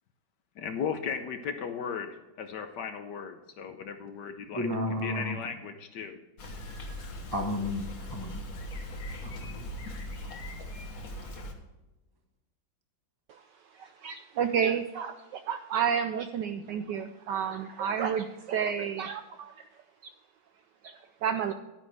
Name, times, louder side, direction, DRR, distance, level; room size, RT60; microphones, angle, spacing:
voice 1, 0.6-2.1 2.4-6.2, left 6 dB, 65° left, 8 dB, 1.2 m, -36 dB
voice 2, 4.5-5.4 7.3-8.4 9.2-9.7, left 1 dB, 25° left, 2 dB, 0.5 m, -33 dB
Bicycle, 6.4-11.5, left 1 dB, 45° left, 1.5 m, -40 dB
voice 3, 13.7-19.6 20.0-20.1 20.8-21.5, right 7 dB, 75° right, 9 dB, 1.0 m, -31 dB
10.5 x 10.0 x 3.4 m, 1.1 s
omnidirectional pair, 2.4 m